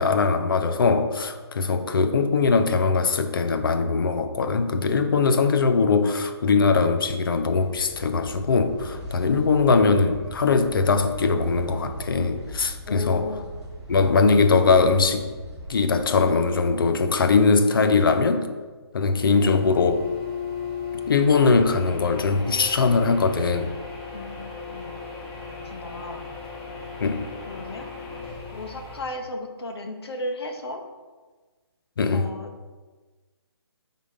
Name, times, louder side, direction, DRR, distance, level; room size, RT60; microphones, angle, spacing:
voice 1, 0.0-13.3 13.9-15.3 15.7-18.5 18.9-20.1 21.1-23.7 27.0-27.3 32.0-32.3, left 4 dB, 55° left, 8 dB, 0.5 m, -21 dB
sound 1, 6.9-17.6, right 1 dB, 5° right, 0.3 m, -40 dB
voice 2, 12.9-13.5 24.1-25.0 25.6-26.3 27.5-27.9 28.5-30.8 32.1-32.5, left 2 dB, 70° left, 4 dB, 0.9 m, -35 dB
sound 2, 19.3-29.0, left 5 dB, 20° left, 1.1 m, -36 dB
4.8 x 3.7 x 5.6 m, 1.3 s
hypercardioid pair, 165°, 14 cm